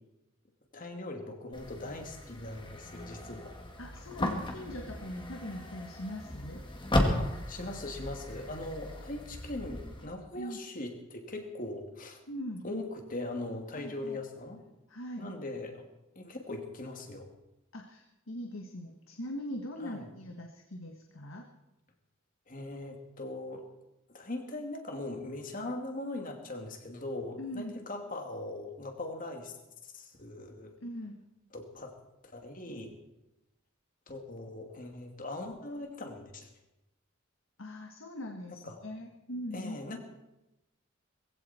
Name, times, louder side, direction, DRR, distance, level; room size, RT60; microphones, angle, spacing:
voice 1, 0.7-3.5 7.2-12.2 12.6-14.6 15.2-15.9 16.2-17.3 19.8-20.1 22.5-23.6 24.1-29.5 29.8-30.7 31.5-31.9 32.2-32.9 34.1-36.5 38.5-38.8 39.5-40.0, left 2 dB, 40° left, 4 dB, 2.6 m, -40 dB
sound 1, 1.5-10.1, left 1 dB, 25° left, 2.3 m, -35 dB
voice 2, 3.8-6.7 10.3-10.6 12.3-12.7 13.7-14.2 14.9-15.3 17.7-21.5 27.4-27.8 30.8-31.2 37.6-39.8, left 1 dB, 75° left, 3 dB, 1.7 m, -41 dB
20.5 x 16.0 x 4.4 m, 0.95 s
head